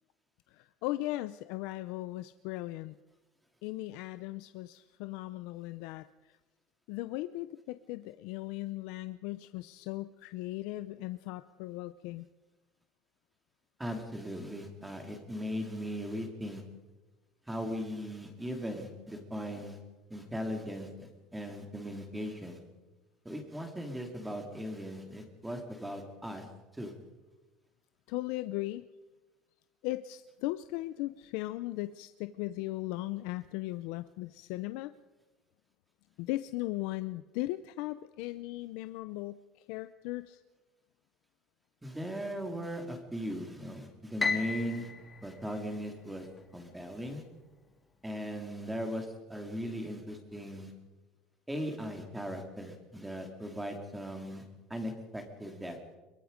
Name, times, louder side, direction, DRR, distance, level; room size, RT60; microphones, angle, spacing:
voice 1, 0.5-3.0 3.6-6.3 6.9-12.3 28.1-28.8 29.8-34.9 36.2-39.4 39.7-40.4, left 17 dB, 70° left, 12 dB, 0.6 m, -37 dB
voice 2, 13.8-16.6 17.5-19.8 20.1-22.6 23.2-26.5 26.7-26.9 41.8-44.9 45.2-46.3 46.5-47.2 48.0-50.7 51.5-55.8, equal, 5° right, 5 dB, 2.5 m, -38 dB
Piano, 44.2-46.5, left 4 dB, 10° left, 1.9 m, -35 dB
23.5 x 22.5 x 5.2 m, 1.1 s
cardioid pair, 175°, 0 cm